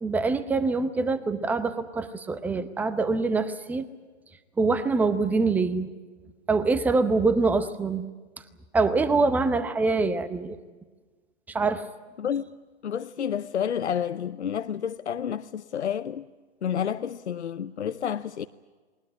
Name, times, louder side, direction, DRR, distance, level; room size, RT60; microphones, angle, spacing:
voice 1, 0.0-3.9 4.6-5.9 6.5-8.0 8.7-10.6 11.5-11.9, right 3 dB, 5° right, 0.7 m, -24 dB
voice 2, 12.2-12.5 12.8-16.3 16.6-18.5, left 8 dB, 85° left, 0.8 m, -30 dB
20.5 x 20.0 x 9.8 m
hypercardioid pair, 140°, 33 cm